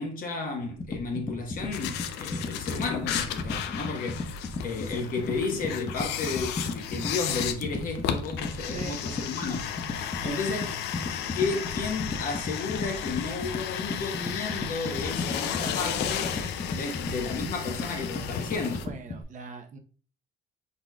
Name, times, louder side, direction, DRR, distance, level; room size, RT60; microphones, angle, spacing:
voice 1, 0.0-4.2 4.6-10.7 11.3-16.4 16.7-18.9, left 4 dB, 55° left, 1.2 m, -33 dB
sound 1, 0.7-19.2, left 2 dB, 25° left, 0.7 m, -35 dB
sound 2, 1.7-18.9, left 9 dB, 85° left, 0.5 m, -34 dB
voice 2, 18.8-19.8, right 3 dB, 50° right, 0.9 m, -41 dB
4.7 x 4.1 x 2.3 m
cardioid pair, 110°, 17 cm